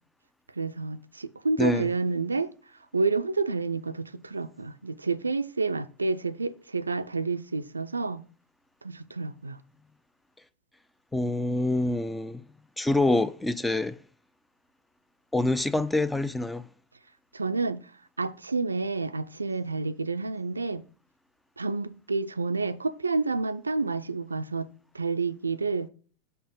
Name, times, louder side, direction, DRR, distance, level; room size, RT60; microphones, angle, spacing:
voice 1, 0.6-2.5 2.9-8.2 8.8-9.6 17.3-17.8 18.2-20.8 21.6-24.7 24.9-25.9, right 3 dB, 80° right, 0.4 m, -29 dB
voice 2, 1.6-1.9 11.1-12.4 12.8-14.0 15.3-16.7, left 2 dB, 5° left, 0.4 m, -26 dB
6.8 x 5.4 x 3.8 m
figure-of-eight pair, 85°, 0 cm